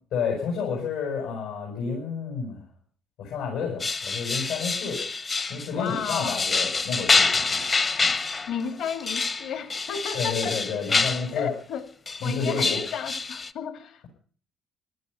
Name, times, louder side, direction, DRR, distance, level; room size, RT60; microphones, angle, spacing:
voice 1, 0.1-2.6 3.2-5.0 5.5-7.6 8.0-8.1 10.1-11.5 12.2-12.8, left 5 dB, 85° left, -2 dB, 7.6 m, -30 dB
sound 1, 3.8-11.3 12.1-13.5, left 4 dB, 25° left, 0.6 m, -26 dB
voice 2, 5.7-6.4 8.5-10.6 11.3-11.9 12.2-14.0, left 7 dB, 65° left, 7 dB, 2.2 m, -32 dB
17.5 x 13.5 x 5.7 m, 0.43 s
cardioid pair, 155°, 0 cm